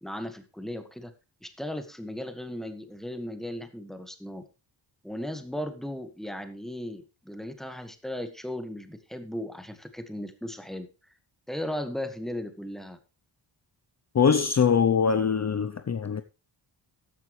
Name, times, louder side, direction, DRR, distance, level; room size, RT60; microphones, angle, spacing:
voice 1, 0.0-1.1 1.4-4.4 5.0-10.9 11.5-13.0, left 1 dB, ahead, 1.7 m, -36 dB
voice 2, 14.1-16.2, left 6 dB, 35° left, 0.7 m, -23 dB
14.5 x 10.5 x 3.2 m
wide cardioid pair, 145°, 46 cm